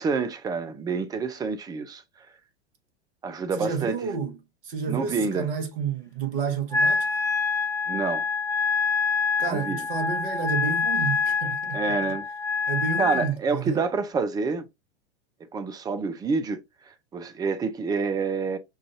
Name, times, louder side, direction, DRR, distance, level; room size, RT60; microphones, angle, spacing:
voice 1, 0.0-2.0 3.2-4.0 4.9-5.5 7.9-8.2 9.4-9.9 11.7-12.3 13.0-14.7 15.5-16.6 17.1-18.6, right 4 dB, 10° right, 0.5 m, -27 dB
voice 2, 3.6-4.4 4.6-7.1 9.4-11.8 12.7-13.8, right 6 dB, 60° right, 1.4 m, -30 dB
Wind instrument woodwind instrument, 6.7-13.3, left 5 dB, 10° left, 0.9 m, -26 dB
6.4 x 2.5 x 2.6 m
figure-of-eight pair, 95°, 32 cm